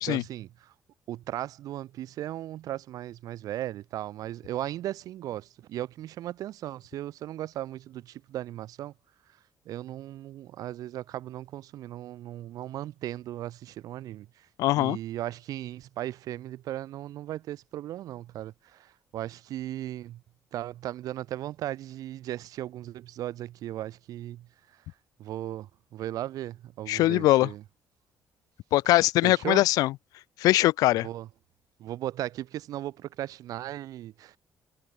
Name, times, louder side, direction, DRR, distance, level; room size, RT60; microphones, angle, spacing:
voice 1, 0.1-0.7 1.1-8.9 9.7-14.5 14.7-20.2 20.5-24.5 25.2-27.6 29.2-29.7 31.0-31.3 31.8-34.4, right 13 dB, 80° right, 3.8 m, -37 dB
voice 2, 14.6-15.0 26.9-27.5 28.7-29.9 30.4-31.1, left 17 dB, 90° left, 0.7 m, -22 dB
cardioid pair, 85°, 6 cm